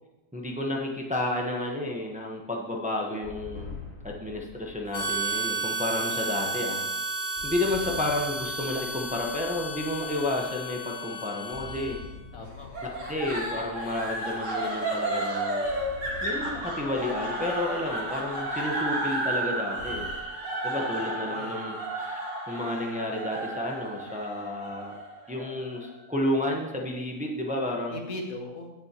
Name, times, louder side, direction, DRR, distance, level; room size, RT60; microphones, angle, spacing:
voice 1, 0.3-3.7 4.0-6.8 7.4-12.0 13.1-15.6 16.2-20.1 20.6-22.2 22.5-25.0 25.3-28.0, left 1 dB, 5° right, 0 dB, 1.0 m, -31 dB
sound 1, 3.2-6.8 7.4-11.2 11.5-15.1 15.6-20.1, left 4 dB, 35° left, 2.4 m, -47 dB
Harmonica, 4.9-12.2, right 3 dB, 55° left, 2.4 m, -33 dB
voice 2, 12.3-13.1 20.5-20.9 21.3-21.5 27.9-28.7, left 2 dB, 75° left, 2 dB, 1.9 m, -40 dB
sound 2, 12.7-25.9, right 1 dB, 60° right, 2.6 m, -32 dB
17.0 x 7.0 x 3.0 m, 1.1 s
omnidirectional pair, 1.5 m